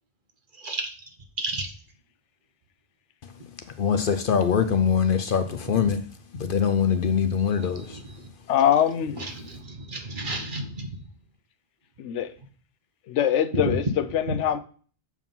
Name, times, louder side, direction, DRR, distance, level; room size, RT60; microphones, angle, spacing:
voice 1, 0.6-0.9 1.4-1.7 7.7-8.0 9.2-11.0 13.7-13.8 14.3-14.4, right 2 dB, 45° right, 1.2 m, -32 dB
voice 2, 3.8-6.0 6.3-8.0, left 7 dB, 55° left, 0.7 m, -23 dB
voice 3, 8.5-9.2 12.0-12.3 13.1-14.6, left 10 dB, 85° left, 1.0 m, -23 dB
7.1 x 4.7 x 5.4 m
omnidirectional pair, 1.2 m